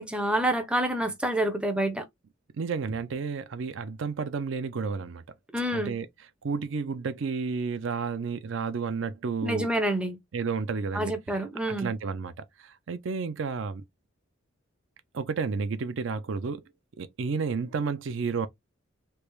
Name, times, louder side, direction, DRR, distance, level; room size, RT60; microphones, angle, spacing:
voice 1, 0.0-2.0 5.5-6.0 9.4-10.2 10.9-11.9, right 1 dB, 5° right, 0.5 m, -27 dB
voice 2, 2.5-5.2 5.7-6.1 6.4-9.7 10.3-11.1 11.7-13.8 15.1-16.6 17.0-18.5, right 5 dB, 65° right, 0.4 m, -31 dB
3.3 x 2.4 x 3.1 m
head